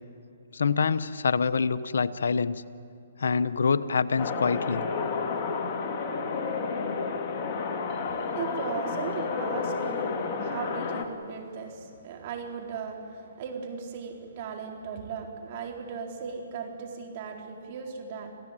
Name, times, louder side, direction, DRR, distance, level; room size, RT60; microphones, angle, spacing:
voice 1, 0.5-2.6 3.2-4.8, left 5 dB, 75° left, 13 dB, 0.9 m, -26 dB
sound 1, 4.2-11.0, left 4 dB, 35° left, 2.4 m, -31 dB
voice 2, 8.1-18.3, right 6 dB, 45° right, 2 dB, 4.0 m, -37 dB
27.0 x 16.0 x 9.0 m, 2.7 s
hypercardioid pair, 140°, 0 cm